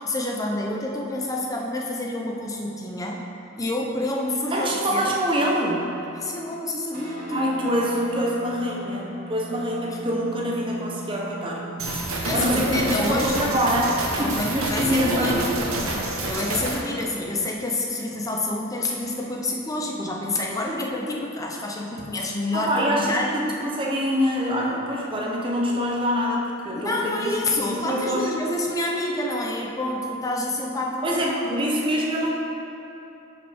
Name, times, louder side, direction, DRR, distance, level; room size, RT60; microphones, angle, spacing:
voice 1, 0.0-3.2 3.6-5.2 6.2-7.4 12.3-13.4 14.2-15.5 16.3-23.3 26.7-31.2 31.5-31.6, left 2 dB, 15° left, -1 dB, 0.6 m, -28 dB
voice 2, 4.5-5.9 7.3-11.6 12.3-15.7 22.5-28.3 31.0-32.3, equal, 25° right, -2 dB, 0.9 m, -25 dB
sound 1, 6.9-17.6, right 3 dB, 40° right, 1.7 m, -41 dB
sound 2, 11.8-16.8, right 2 dB, 80° right, 1.1 m, -28 dB
10.0 x 5.2 x 3.5 m, 2.9 s
head